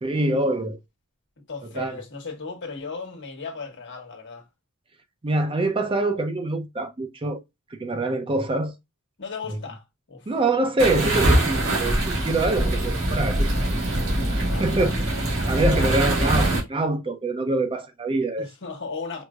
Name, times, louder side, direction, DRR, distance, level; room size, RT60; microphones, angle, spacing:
voice 1, 0.0-0.8 1.8-1.9 5.2-7.4 7.8-8.7 10.3-13.5 14.3-15.0 15.5-18.5, right 2 dB, 25° right, 0.5 m, -25 dB
voice 2, 1.4-4.5 9.2-10.4 14.5-15.0 15.7-16.7 18.4-19.2, left 4 dB, 55° left, 1.3 m, -36 dB
sound 1, 10.8-16.6, right 1 dB, 60° right, 1.8 m, -23 dB
4.6 x 2.6 x 2.3 m
head